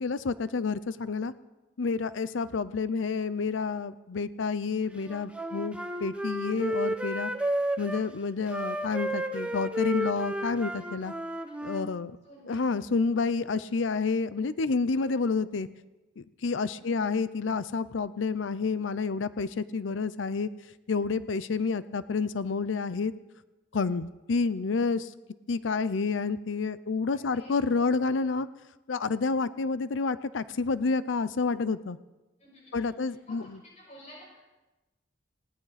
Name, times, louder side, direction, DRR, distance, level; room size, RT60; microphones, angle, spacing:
voice 1, 0.0-1.3 1.8-7.3 7.8-11.1 11.6-12.2 12.5-15.7 16.2-20.5 20.9-23.1 23.7-25.1 25.5-28.5 28.9-32.0 32.7-33.4, left 4 dB, 90° left, 16 dB, 0.6 m, -29 dB
Wind instrument woodwind instrument, 5.1-8.0 8.5-11.9, right 1 dB, 5° right, 1.0 m, -32 dB
voice 2, 12.2-12.7 16.8-17.1 27.1-27.8 32.4-34.4, equal, 40° left, -3 dB, 6.5 m, -52 dB
19.5 x 17.0 x 4.1 m, 1.1 s
head